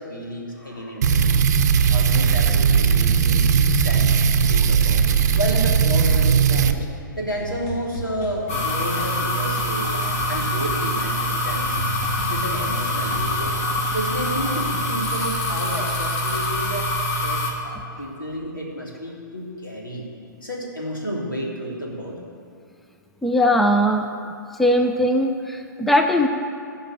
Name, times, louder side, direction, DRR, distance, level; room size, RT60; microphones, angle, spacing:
voice 1, 0.0-1.4 1.9-4.2 4.5-6.9 7.2-11.8 12.3-13.6 13.9-16.9 17.2-20.1 20.4-22.2, equal, 80° left, -2 dB, 2.9 m, -31 dB
sound 1, 1.0-6.7, right 6 dB, 55° right, 0.7 m, -18 dB
sound 2, 7.3-14.9, equal, 30° left, 1.9 m, -36 dB
sound 3, 8.5-17.5, left 1 dB, 45° left, 2.8 m, -25 dB
voice 2, 23.2-24.1 24.6-26.3, equal, ahead, 4 dB, 0.5 m, -19 dB
16.0 x 5.6 x 7.3 m, 2.4 s
figure-of-eight pair, 115°, 11 cm